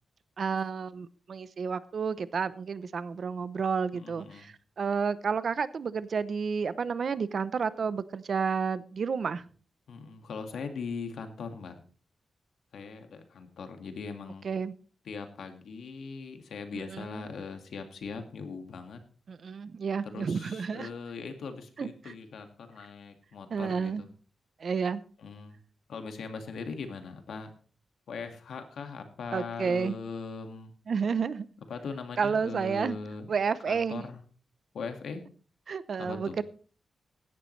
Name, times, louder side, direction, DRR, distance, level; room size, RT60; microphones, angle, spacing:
voice 1, 0.4-9.4 14.4-14.7 16.7-17.2 19.3-20.9 21.8-22.1 23.5-24.0 24.6-25.0 29.3-30.0 30.9-31.5 32.2-33.0 33.3-34.0 35.7-36.4, right 6 dB, 50° right, 16 dB, 0.7 m, -31 dB
voice 2, 3.9-4.5 9.9-11.8 12.7-14.5 15.1-19.0 20.1-24.1 25.2-25.6 25.9-27.5 28.1-30.7 31.7-33.3 33.7-34.2 34.7-35.2 36.0-36.4, left 5 dB, 80° left, 6 dB, 1.9 m, -40 dB
16.0 x 11.5 x 3.2 m, 0.40 s
wide cardioid pair, 160°, 0 cm